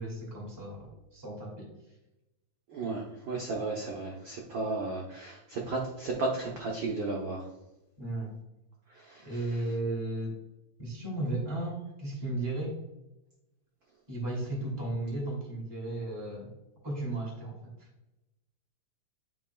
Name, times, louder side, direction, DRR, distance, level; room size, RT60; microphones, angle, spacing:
voice 1, 0.0-1.7 8.0-8.3 9.2-10.3 10.8-12.8 14.1-16.5 16.8-17.9, right 2 dB, 10° right, -3 dB, 1.6 m, -35 dB
voice 2, 2.7-7.5 8.9-9.6, right 3 dB, 90° right, -2 dB, 1.0 m, -34 dB
9.3 x 4.8 x 2.2 m, 0.94 s
omnidirectional pair, 3.5 m